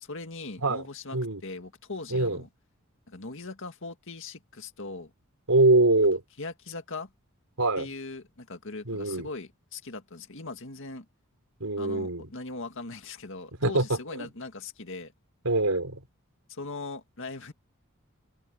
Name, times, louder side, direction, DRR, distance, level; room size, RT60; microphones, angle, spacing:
voice 1, 0.0-2.5 3.1-5.1 6.4-7.1 7.8-11.1 11.8-15.1 16.5-17.5, left 3 dB, 60° left, 2.1 m, -40 dB
voice 2, 2.1-2.4 5.5-6.2 7.6-7.9 8.9-9.3 11.6-12.3 13.6-14.3 15.4-16.0, right 2 dB, 85° right, 3.7 m, -24 dB
open air
head